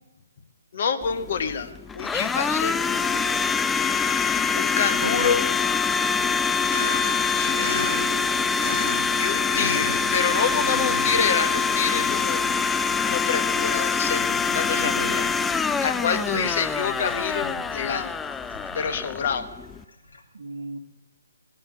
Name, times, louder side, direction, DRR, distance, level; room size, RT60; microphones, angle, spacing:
voice 1, 0.7-2.8 4.5-5.5 7.4-8.3 9.2-12.5 13.0-15.3 15.8-18.1 18.7-19.5, left 6 dB, 45° left, 8 dB, 1.5 m, -27 dB
Domestic sounds home sounds, 1.0-19.8, left 5 dB, 10° left, 0.4 m, -25 dB
Sink (filling or washing), 3.0-3.8 4.1-20.2, left 2 dB, 80° left, 3.5 m, -38 dB
voice 2, 5.0-5.3 10.7-10.8 14.8-15.2 16.1-16.5 20.3-20.8, right 3 dB, 65° right, 5 dB, 1.8 m, -34 dB
19.5 x 8.7 x 7.4 m, 1.1 s
figure-of-eight pair, 135°, 0 cm